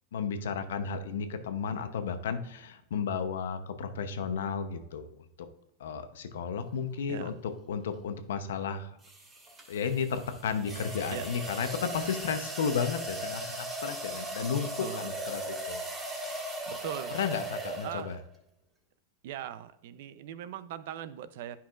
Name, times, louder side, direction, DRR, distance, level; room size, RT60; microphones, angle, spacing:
voice 1, 0.1-5.1 5.8-8.9 9.7-14.7 14.9-16.4 17.1-18.2, left 6 dB, 85° left, 9 dB, 0.8 m, -33 dB
sound 1, 7.1-7.4 9.0-18.3, right 1 dB, 20° right, 1.9 m, -38 dB
voice 2, 14.8-15.2 16.7-17.2 17.8-18.2 19.2-21.6, right 10 dB, 70° right, 13 dB, 0.6 m, -40 dB
10.0 x 5.6 x 2.5 m, 0.78 s
supercardioid pair, 135°, 0 cm